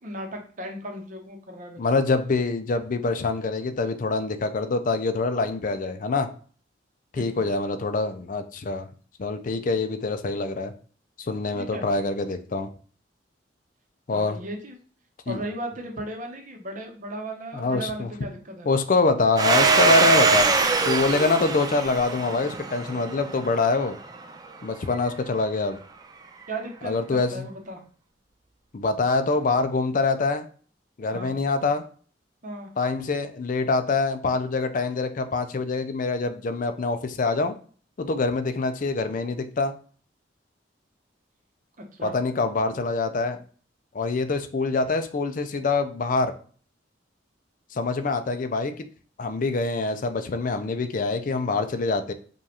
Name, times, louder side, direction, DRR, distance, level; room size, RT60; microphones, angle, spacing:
voice 1, 0.0-1.8 7.1-7.5 11.5-11.9 14.1-14.8 15.3-18.7 26.5-27.8 31.1-31.4 32.4-32.7 41.8-42.2, right 1 dB, 45° right, 3 dB, 0.8 m, -36 dB
voice 2, 1.8-6.3 7.1-8.9 9.2-10.7 11.2-12.7 14.1-14.4 15.3-15.4 17.5-18.1 18.7-24.0 24.6-25.8 26.8-27.5 28.7-30.5 31.0-31.8 32.8-37.5 38.0-39.8 42.0-43.4 43.9-46.3 47.7-48.9 49.2-52.1, left 3 dB, 45° left, 9 dB, 0.4 m, -25 dB
Domestic sounds home sounds, 19.4-23.8, right 4 dB, 20° right, 0.3 m, -22 dB
5.0 x 2.4 x 2.9 m, 0.42 s
head